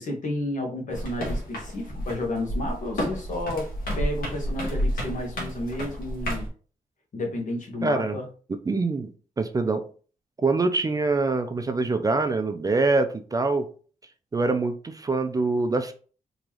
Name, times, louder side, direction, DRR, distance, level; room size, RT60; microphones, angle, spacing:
voice 1, 0.0-3.7 3.9-6.5 7.1-8.2, left 1 dB, 60° left, 2 dB, 1.2 m, -31 dB
sound 1, 0.9-6.5, equal, 85° left, 1.5 m, -30 dB
voice 2, 7.8-8.2 8.7-9.1 9.4-9.9 10.4-13.7 14.3-15.9, right 3 dB, 25° right, 8 dB, 0.4 m, -24 dB
3.7 x 3.0 x 3.0 m, 0.39 s
wide cardioid pair, 130°, 15 cm